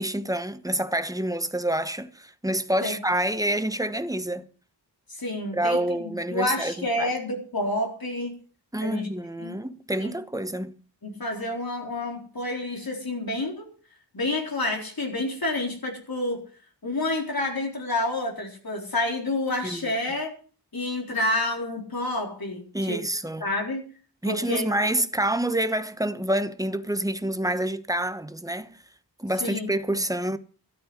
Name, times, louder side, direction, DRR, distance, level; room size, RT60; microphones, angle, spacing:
voice 1, 0.0-4.5 5.5-7.1 8.7-10.8 19.6-19.9 22.7-23.4 24.2-28.8 29.2-30.4, right 1 dB, 10° right, 1.1 m, -27 dB
voice 2, 5.2-8.3 8.8-9.1 9.4-9.6 10.0-10.1 11.0-13.7 14.1-16.4 16.8-20.3 20.7-23.0 23.4-23.8 24.2-24.7 29.4-29.7, left 2 dB, 55° left, 4.1 m, -29 dB
13.0 x 8.8 x 8.0 m
wide cardioid pair, 70°, 42 cm